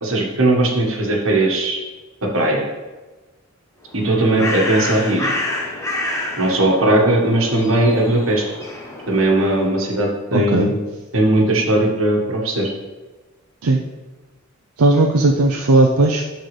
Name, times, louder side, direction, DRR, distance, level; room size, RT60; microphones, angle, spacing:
voice 1, 0.0-1.8 2.2-2.7 3.9-5.3 6.4-8.4 9.1-10.8 11.1-12.7, right 1 dB, 65° right, 0 dB, 1.4 m, -18 dB
Bird, 3.9-9.9, left 1 dB, 15° left, 0.9 m, -28 dB
voice 2, 10.3-10.7 13.6-13.8 14.8-16.2, right 2 dB, 85° right, 1 dB, 0.6 m, -16 dB
11.5 x 4.0 x 3.3 m, 1.2 s
head